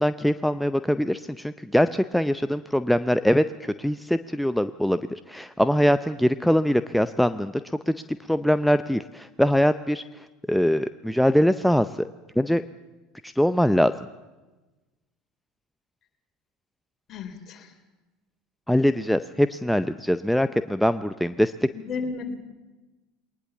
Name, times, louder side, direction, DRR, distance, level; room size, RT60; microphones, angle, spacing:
voice 1, 0.0-8.0 8.3-12.1 12.4-12.6 13.2-13.9 18.7-21.5, equal, ahead, 12 dB, 0.6 m, -23 dB
voice 2, 17.1-17.7 21.7-22.4, left 4 dB, 40° left, 5 dB, 3.6 m, -33 dB
21.5 x 19.5 x 7.2 m, 1.2 s
figure-of-eight pair, 75°, 0 cm